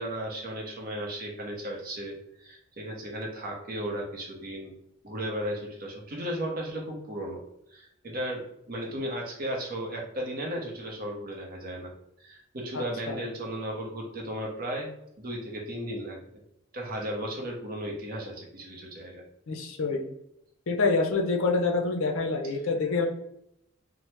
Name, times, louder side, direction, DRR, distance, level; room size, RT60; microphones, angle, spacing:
voice 1, 0.0-4.7 5.0-7.4 7.7-11.9 12.2-14.9 15.2-16.2 16.7-19.2, equal, 40° right, 0 dB, 0.7 m, -35 dB
voice 2, 12.7-13.2 19.5-20.1 20.7-23.1, left 3 dB, 65° left, 2 dB, 0.5 m, -27 dB
2.8 x 2.1 x 3.2 m, 0.78 s
head